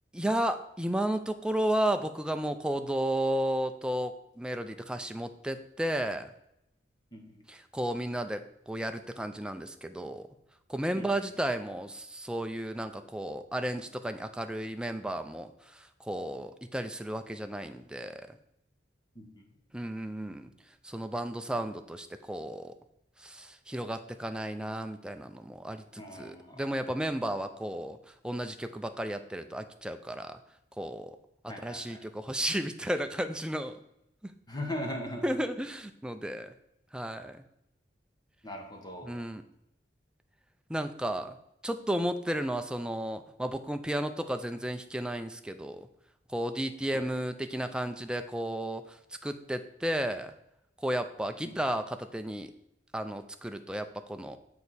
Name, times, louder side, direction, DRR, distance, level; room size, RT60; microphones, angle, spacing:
voice 1, 0.1-6.3 7.5-10.3 10.7-18.4 19.7-20.5 20.8-22.7 23.2-28.0 28.2-30.4 30.8-31.2 31.4-33.8 34.2-34.3 35.2-36.5 36.9-37.4 39.0-39.4 40.7-41.4 41.6-45.9 46.3-50.3 50.8-52.5 52.9-54.4, right 1 dB, 5° right, 7 dB, 0.4 m, -33 dB
voice 2, 7.1-7.4 10.9-11.1 19.1-19.5 26.0-26.6 31.5-32.0 34.5-35.4 38.4-39.2 46.9-47.0 51.4-51.6, left 1 dB, 25° left, 2 dB, 1.1 m, -40 dB
6.9 x 4.6 x 4.2 m, 0.81 s
head